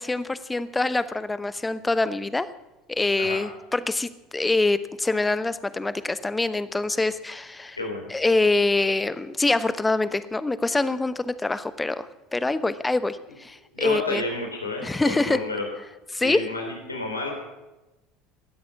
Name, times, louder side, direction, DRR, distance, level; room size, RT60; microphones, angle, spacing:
voice 1, 0.0-2.5 2.9-7.8 8.1-12.1 12.3-14.2 14.8-15.4 16.1-16.4, left 2 dB, 15° left, 14 dB, 0.9 m, -25 dB
voice 2, 7.8-8.1 13.7-15.6 16.2-17.3, left 2 dB, 90° left, 2 dB, 3.7 m, -30 dB
18.5 x 13.0 x 5.8 m, 1.0 s
figure-of-eight pair, 70°, 0 cm